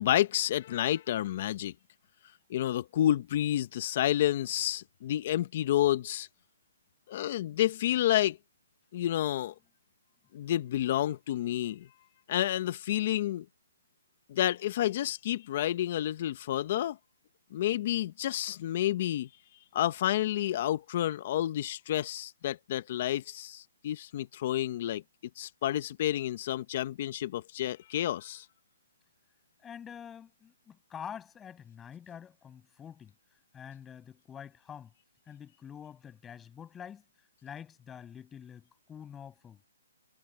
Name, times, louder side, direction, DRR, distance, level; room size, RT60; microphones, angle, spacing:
voice 1, 0.0-1.7 2.5-6.3 7.1-8.4 8.9-9.5 10.3-11.9 12.3-13.5 14.3-17.0 17.5-19.3 19.7-25.0 25.4-28.5, left 12 dB, 40° left, 1.0 m, -30 dB
voice 2, 29.6-33.1 33.5-34.9 35.3-37.0 37.4-39.6, left 8 dB, 10° left, 7.6 m, -46 dB
hypercardioid pair, 160°, 0 cm